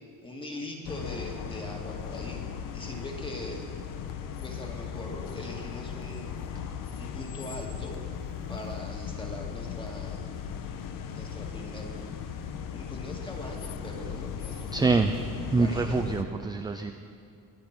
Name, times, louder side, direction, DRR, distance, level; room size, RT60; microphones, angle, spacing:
voice 1, 0.2-2.4 2.7-3.7 4.4-8.0 8.5-10.3 11.1-12.1 12.7-15.1 15.5-16.0, left 1 dB, 15° left, 1 dB, 2.1 m, -41 dB
sound 1, 0.8-16.2, left 7 dB, 60° left, 1.1 m, -37 dB
voice 2, 14.7-15.1 15.5-16.9, right 4 dB, 10° right, 6 dB, 0.3 m, -25 dB
23.0 x 8.8 x 6.0 m, 2.4 s
cardioid pair, 155°, 37 cm